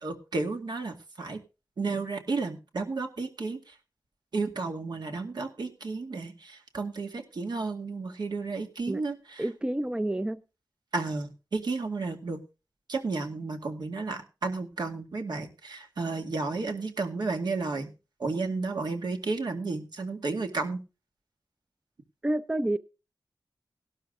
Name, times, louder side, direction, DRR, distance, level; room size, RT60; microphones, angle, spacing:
voice 1, 0.0-1.4 1.8-3.7 4.3-9.4 10.9-12.4 12.9-17.9 18.2-20.8, right 3 dB, 70° right, 2.1 m, -32 dB
voice 2, 9.4-10.4 22.2-22.8, right 1 dB, 15° right, 0.6 m, -29 dB
17.5 x 12.0 x 2.5 m
wide cardioid pair, 125°, 8 cm